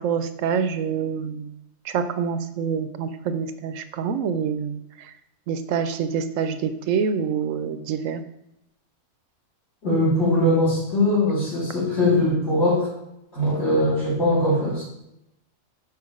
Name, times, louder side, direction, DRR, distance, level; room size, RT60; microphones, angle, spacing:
voice 1, 0.0-1.5 1.8-5.1 5.5-8.2, right 6 dB, 75° right, 11 dB, 0.9 m, -26 dB
voice 2, 9.8-12.9 13.3-14.8, left 1 dB, 50° left, -10 dB, 3.0 m, -21 dB
6.0 x 5.9 x 5.0 m, 0.84 s
omnidirectional pair, 1.5 m